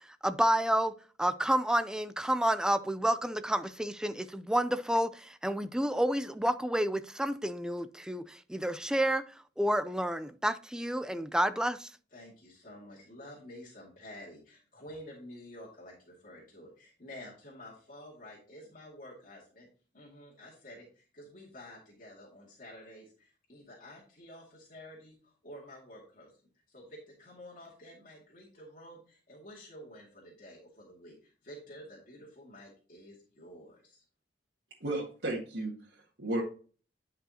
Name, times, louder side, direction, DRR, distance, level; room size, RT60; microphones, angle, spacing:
voice 1, 0.2-9.2 9.6-11.9, right 1 dB, 5° right, 0.4 m, -30 dB
voice 2, 12.1-19.7 19.9-26.3 26.7-34.0, left 1 dB, 50° left, 2.3 m, -50 dB
voice 3, 34.8-36.4, right 1 dB, 75° right, 1.8 m, -34 dB
10.0 x 5.5 x 2.9 m
head